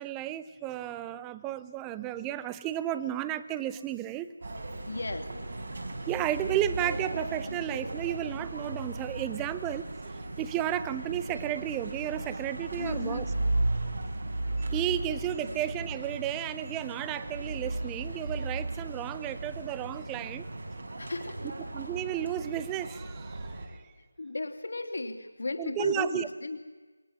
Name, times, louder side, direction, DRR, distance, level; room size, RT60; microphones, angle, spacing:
voice 1, 0.0-4.3 6.1-9.9 10.4-13.3 14.6-20.5 21.7-23.5 25.6-26.3, right 12 dB, 10° right, 14 dB, 0.7 m, -33 dB
sound 1, 4.4-23.7, right 2 dB, 50° right, 5.3 m, -36 dB
voice 2, 4.9-5.3 12.8-13.3 15.4-15.6 21.0-21.4 24.2-26.6, left 2 dB, 55° left, 6 dB, 3.0 m, -35 dB
27.5 x 21.5 x 7.6 m, 1.3 s
figure-of-eight pair, 160°, 0 cm